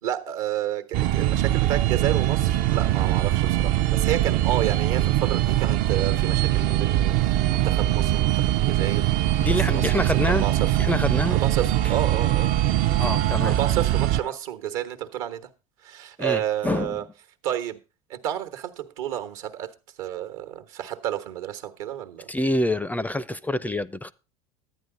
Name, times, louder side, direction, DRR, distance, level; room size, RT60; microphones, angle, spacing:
voice 1, 0.0-9.1 9.5-10.9 11.3-12.5 13.4-15.5 15.8-17.0 17.4-17.8 18.1-22.3, right 11 dB, 75° right, 1.2 m, -31 dB
sound 1, 0.9-14.2, right 13 dB, 55° right, 0.5 m, -22 dB
voice 2, 9.4-10.4 10.8-11.4 13.0-13.6 16.2-16.9 22.3-24.1, left 1 dB, 10° left, 0.4 m, -26 dB
11.5 x 9.3 x 3.8 m
hypercardioid pair, 90°, 17 cm